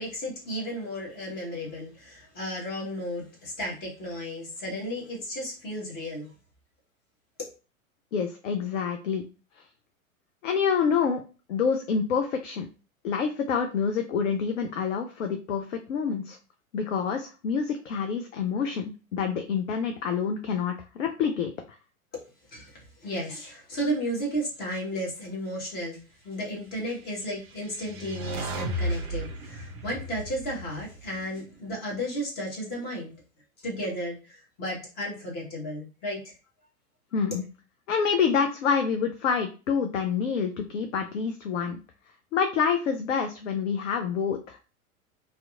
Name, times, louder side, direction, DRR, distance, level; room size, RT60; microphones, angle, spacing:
voice 1, 0.0-6.3 22.5-33.1 33.6-36.3, equal, 20° left, -3 dB, 1.0 m, -34 dB
voice 2, 8.1-9.2 10.4-11.2 11.5-12.7 13.0-16.4 16.7-21.5 37.1-37.4 37.9-41.8 42.3-44.6, left 6 dB, 60° left, 5 dB, 0.5 m, -27 dB
sound 1, 27.2-31.6, right 1 dB, 45° right, 0.6 m, -35 dB
2.8 x 2.1 x 2.3 m, 0.33 s
figure-of-eight pair, 100°, 43 cm